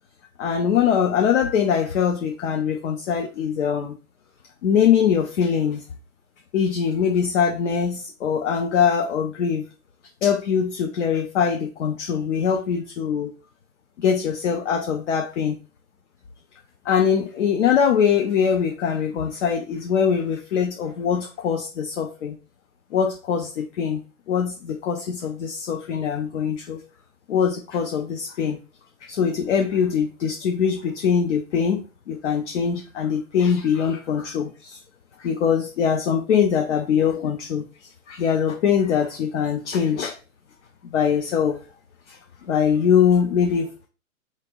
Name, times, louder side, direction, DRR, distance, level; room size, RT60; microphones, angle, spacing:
voice 1, 0.4-4.0 4.6-5.8 6.5-9.6 10.2-13.3 14.0-15.6 16.8-22.4 22.9-24.0 24.3-26.8 27.3-28.6 29.0-34.8 35.2-40.2 40.9-41.6 42.1-42.2 42.5-43.9, left 7 dB, 50° left, 4 dB, 0.7 m, -22 dB
3.6 x 3.0 x 4.4 m, 0.35 s
hypercardioid pair, 135°, 45 cm